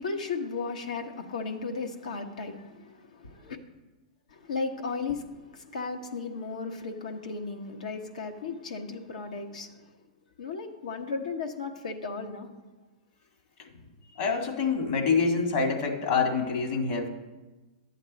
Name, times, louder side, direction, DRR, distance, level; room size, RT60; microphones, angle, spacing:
voice 1, 0.0-3.6 4.3-9.9 10.4-12.5 14.0-14.2, left 4 dB, 80° left, 4 dB, 1.2 m, -35 dB
voice 2, 14.2-17.1, left 4 dB, 55° left, 3 dB, 1.9 m, -26 dB
11.5 x 7.9 x 4.1 m, 1.2 s
hypercardioid pair, 120°, 4 cm